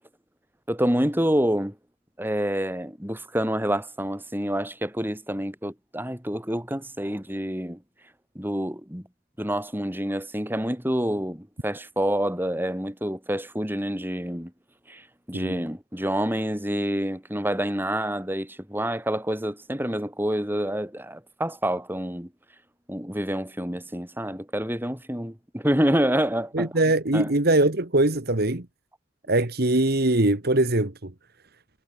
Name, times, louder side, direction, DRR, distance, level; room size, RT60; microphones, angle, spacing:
voice 1, 0.7-1.7 2.2-7.8 8.3-9.0 9.4-14.5 14.9-15.0 15.3-22.3 22.9-26.7 27.1-27.3, equal, 10° right, 4.9 m, -27 dB
voice 2, 26.5-28.7 29.3-31.1, right 2 dB, 55° right, 1.9 m, -22 dB
head